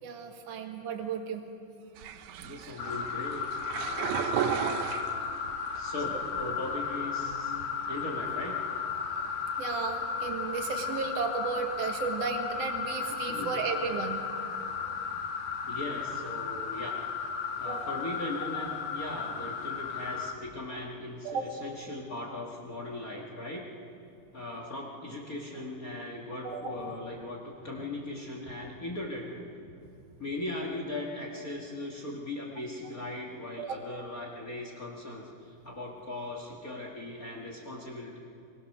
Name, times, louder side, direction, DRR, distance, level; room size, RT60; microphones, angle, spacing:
voice 1, 0.0-1.4 2.6-2.7 7.7-7.8 9.6-14.2 17.6-17.9 18.6-18.8 21.2-21.5 26.4-26.8 33.6-33.7, right 5 dB, 50° right, 3 dB, 2.2 m, -34 dB
sound 1, 2.0-5.6 6.1-6.7, right 9 dB, 80° right, 1.7 m, -34 dB
voice 2, 2.4-3.5 3.7-4.9 5.7-7.6 7.9-8.6 13.1-13.5 15.7-17.0 17.6-23.7 24.3-29.5 30.2-38.2, left 2 dB, 40° left, 0 dB, 1.3 m, -39 dB
sound 2, 2.8-20.3, left 6 dB, 65° left, 2.7 m, -35 dB
24.0 x 21.5 x 6.6 m, 2.6 s
omnidirectional pair, 4.4 m